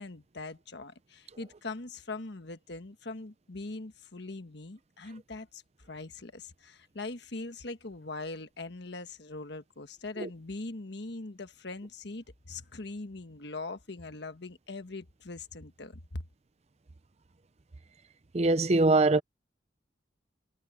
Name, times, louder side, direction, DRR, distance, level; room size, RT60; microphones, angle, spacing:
voice 1, 0.0-5.6 5.9-16.2, left 3 dB, 65° left, 1.4 m, -41 dB
voice 2, 18.3-19.2, right 2 dB, 35° right, 0.6 m, -23 dB
head